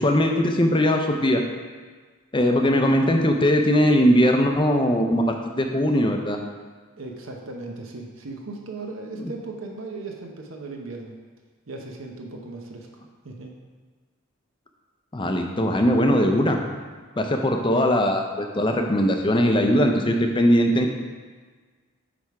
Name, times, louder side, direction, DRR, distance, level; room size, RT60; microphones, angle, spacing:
voice 1, 0.0-1.4 2.3-6.4 9.2-9.3 15.1-16.6 17.2-20.9, equal, 25° left, 4 dB, 0.5 m, -20 dB
voice 2, 7.0-11.1 11.7-13.5, right 3 dB, 75° right, 1 dB, 0.8 m, -37 dB
8.8 x 3.5 x 4.8 m, 1.5 s
head